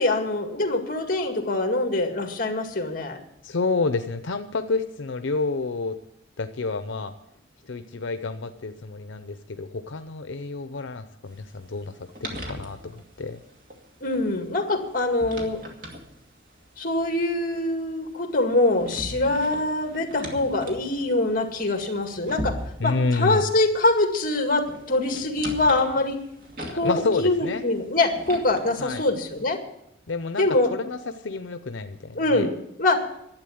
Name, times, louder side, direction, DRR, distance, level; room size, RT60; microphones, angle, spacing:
voice 1, 0.0-3.2 14.0-15.6 16.8-26.2 26.7-29.6 30.4-30.7 32.2-33.1, left 2 dB, 45° left, 5 dB, 2.0 m, -24 dB
voice 2, 3.4-5.9 6.4-7.1 7.7-12.0 12.3-13.4 22.8-23.4 26.6-27.6 28.8-29.0 30.1-32.5, left 3 dB, 85° left, 9 dB, 0.7 m, -29 dB
sound 1, 11.3-29.6, equal, 45° right, 2.4 m, -41 dB
12.0 x 8.5 x 9.2 m, 0.79 s
head